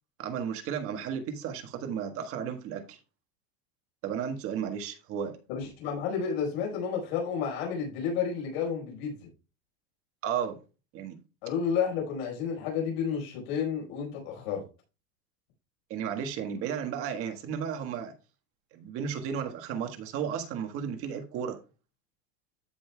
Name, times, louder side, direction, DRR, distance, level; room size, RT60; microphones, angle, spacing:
voice 1, 0.2-3.0 4.0-5.4 10.2-10.6 10.9-11.2 15.9-18.1 18.7-21.6, right 8 dB, 45° right, 1.5 m, -34 dB
voice 2, 5.5-9.3 11.4-14.6, left 7 dB, 80° left, 4.7 m, -31 dB
14.0 x 5.5 x 2.3 m
cardioid pair, 160°, 30 cm